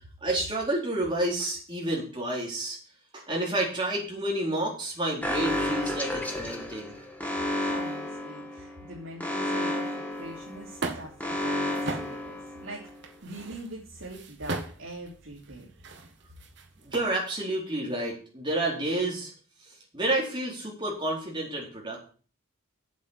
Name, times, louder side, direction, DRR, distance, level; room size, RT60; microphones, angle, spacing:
voice 1, 0.2-2.8 3.1-6.9 16.8-19.3 19.9-22.1, right 1 dB, 25° right, -3 dB, 4.3 m, -30 dB
Alarm, 5.2-13.0, left 1 dB, 10° left, 1.6 m, -32 dB
voice 2, 7.5-12.9 13.2-15.7, right 1 dB, 80° right, -5 dB, 3.0 m, -43 dB
sound 1, 10.1-17.0, right 3 dB, 60° right, 1.8 m, -40 dB
8.3 x 7.6 x 8.2 m, 0.40 s
head